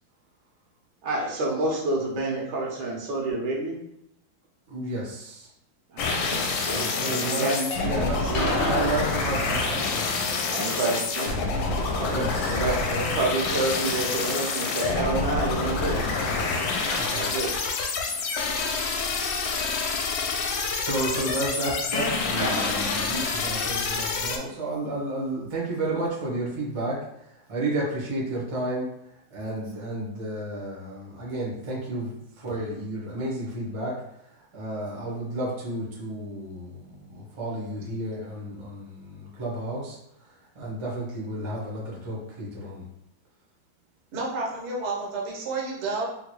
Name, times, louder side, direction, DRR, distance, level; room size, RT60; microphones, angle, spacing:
voice 1, 1.0-3.8 5.9-7.6 8.2-8.5 10.5-11.3 12.0-16.1 17.1-17.5, right 2 dB, 80° right, -2 dB, 1.6 m, -29 dB
voice 2, 4.7-5.5 6.7-10.3 12.1-12.6 16.9-17.3 19.3-19.7 20.8-27.0 27.5-28.9 29.3-33.9 34.5-40.0 40.5-42.8, right 1 dB, 35° right, -5 dB, 0.4 m, -32 dB
sound 1, 6.0-24.4, left 4 dB, 80° left, 1.3 m, -27 dB
sound 2, 8.3-10.4 16.8-18.0 18.3-18.4 18.8-18.9 22.4-23.7, left 1 dB, 50° left, 0.8 m, -33 dB
voice 3, 44.1-46.1, right 3 dB, 55° right, -3 dB, 0.8 m, -30 dB
3.8 x 2.2 x 3.0 m, 0.80 s
omnidirectional pair, 2.2 m